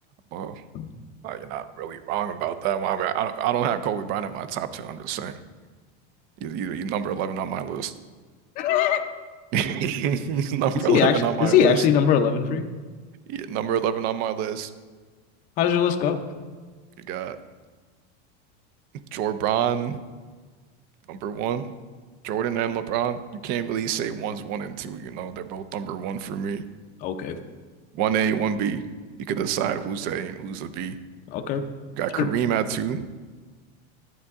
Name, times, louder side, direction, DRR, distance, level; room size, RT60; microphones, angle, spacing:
voice 1, 0.3-0.6 1.2-5.4 6.4-7.9 9.5-11.9 13.3-14.7 17.0-17.4 19.1-20.0 21.1-21.7 22.2-26.6 27.9-28.9 29.3-31.0 31.9-33.1, right 9 dB, 30° right, 12 dB, 0.4 m, -27 dB
voice 2, 8.6-9.0 10.7-12.7 15.6-16.2 27.0-27.4 31.3-31.6 32.2-32.3, left 8 dB, 25° left, 5 dB, 0.5 m, -21 dB
12.0 x 8.6 x 3.6 m, 1.5 s
supercardioid pair, 165°, 34 cm